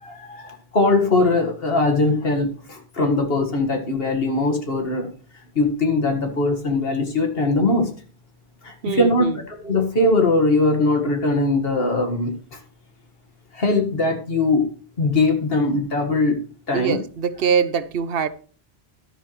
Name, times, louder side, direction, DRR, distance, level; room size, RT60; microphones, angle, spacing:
voice 1, 0.0-5.1 5.6-7.9 8.6-9.3 9.6-12.6 13.5-14.7 15.0-16.4 16.7-17.0, left 2 dB, 65° left, 4 dB, 2.0 m, -21 dB
voice 2, 8.8-9.4 16.7-18.3, right 7 dB, 65° right, 14 dB, 0.9 m, -23 dB
12.0 x 10.0 x 3.2 m, 0.42 s
omnidirectional pair, 1.1 m